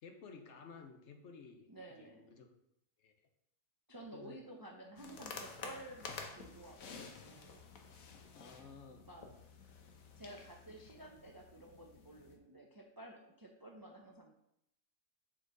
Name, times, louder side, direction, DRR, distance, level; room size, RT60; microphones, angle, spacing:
voice 1, 0.0-2.5 3.0-3.1 4.1-4.4 8.3-9.1, left 5 dB, 60° left, 5 dB, 1.1 m, -54 dB
voice 2, 1.7-2.4 3.9-7.6 9.0-9.3 10.1-14.3, right 1 dB, 25° right, 1 dB, 0.5 m, -53 dB
sound 1, 5.0-12.4, left 5 dB, 85° left, 1.3 m, -51 dB
7.5 x 4.5 x 3.9 m, 0.79 s
omnidirectional pair, 1.4 m